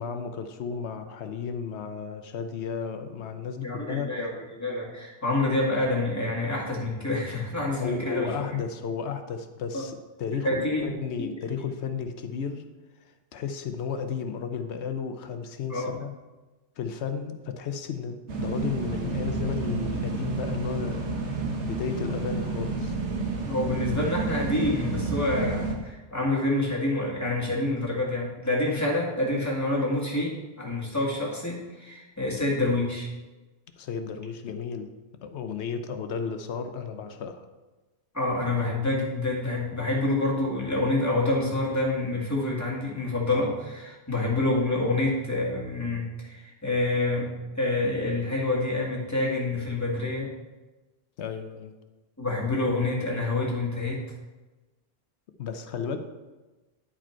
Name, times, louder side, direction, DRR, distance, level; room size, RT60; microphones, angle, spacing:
voice 1, 0.0-4.2 7.8-12.6 13.3-16.1 16.8-23.0 33.8-34.9 35.2-37.5 51.2-51.7 55.4-56.0, left 6 dB, 75° left, 8 dB, 1.0 m, -33 dB
voice 2, 3.6-8.4 9.7-9.8 10.4-10.9 11.2-11.6 15.7-15.9 23.4-33.1 38.1-50.3 52.2-54.0, left 2 dB, 15° left, -4 dB, 2.0 m, -27 dB
sound 1, 18.3-25.8, right 3 dB, 85° right, 1.4 m, -30 dB
10.0 x 4.9 x 4.5 m, 1.2 s
omnidirectional pair, 1.2 m